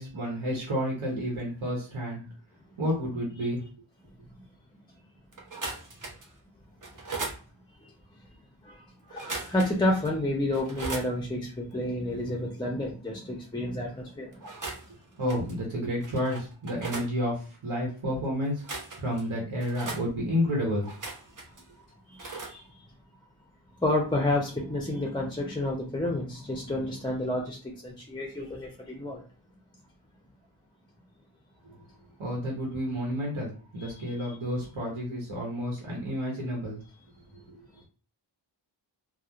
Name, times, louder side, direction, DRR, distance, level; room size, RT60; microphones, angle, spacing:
voice 1, 0.0-2.2 2.8-3.7 15.2-18.6 19.0-20.9 31.6-31.7 32.2-36.8 37.5-37.6, equal, 90° right, -3 dB, 0.9 m, -30 dB
sound 1, 5.3-6.3 6.8-7.4 9.1-9.8 10.1-10.2 10.5-11.1 14.3-14.9 15.3-15.5 16.0-17.1 18.5-19.2 19.6-20.0 20.8-21.6 22.2-22.5, right 3 dB, 40° right, 0.7 m, -38 dB
voice 2, 7.8-8.2 8.6-14.4 22.1-22.9 23.8-29.2 33.8-34.3, left 1 dB, 10° left, 0 dB, 0.4 m, -30 dB
2.8 x 2.1 x 2.4 m, 0.36 s
wide cardioid pair, 60°, 48 cm